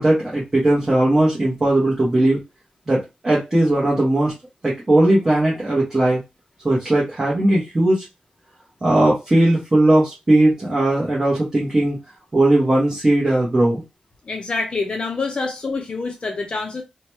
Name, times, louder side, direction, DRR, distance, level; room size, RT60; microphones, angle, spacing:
voice 1, 0.0-2.4 2.9-4.3 4.6-6.2 6.6-8.0 8.8-12.0 12.3-13.8, right 1 dB, 20° right, 0.9 m, -18 dB
voice 2, 14.3-16.8, left 3 dB, 40° left, 0.5 m, -26 dB
2.8 x 2.2 x 3.0 m
wide cardioid pair, 170°, 3 cm